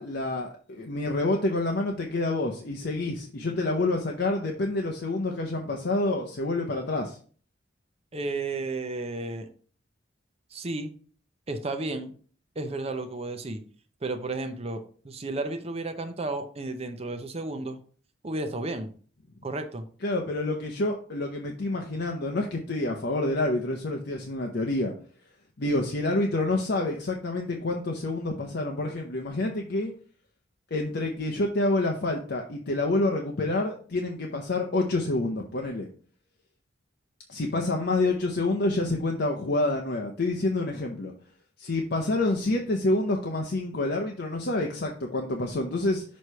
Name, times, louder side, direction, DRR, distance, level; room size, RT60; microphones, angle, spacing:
voice 1, 0.0-7.2 20.0-24.9 25.6-29.9 30.7-35.9 37.3-41.1 41.6-46.0, left 2 dB, 55° left, 2 dB, 0.7 m, -28 dB
voice 2, 8.1-9.5 10.5-10.9 11.5-12.1 12.6-13.6 14.0-17.8 18.2-18.9 19.4-19.8, right 2 dB, 35° right, 7 dB, 0.6 m, -33 dB
6.4 x 3.2 x 5.5 m, 0.43 s
head